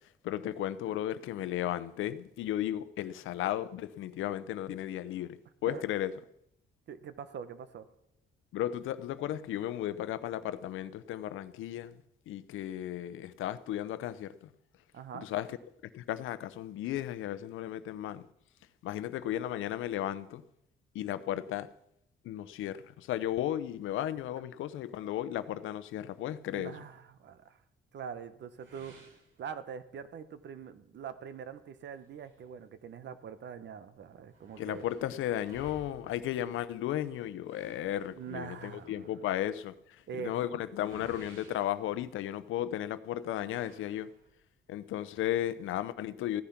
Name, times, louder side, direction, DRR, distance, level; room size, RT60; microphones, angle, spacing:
voice 1, 0.2-6.2 8.5-11.9 12.3-14.5 15.1-15.6 15.8-18.3 18.8-20.4 20.9-21.7 22.2-26.7 34.6-44.1 44.7-46.4, left 12 dB, 85° left, 0.8 m, -35 dB
voice 2, 6.9-7.8 14.9-15.3 26.5-27.6 27.9-29.1 29.4-34.8 38.1-39.2 40.1-40.3, right 7 dB, 65° right, 1.2 m, -43 dB
sound 1, 28.6-30.0 30.5-30.6 31.0-31.1 31.9-33.3 33.6-33.7 33.9-42.6 43.3-44.5, right 3 dB, 80° right, 4.7 m, -58 dB
15.5 x 10.0 x 5.9 m
cardioid pair, 90°, 20 cm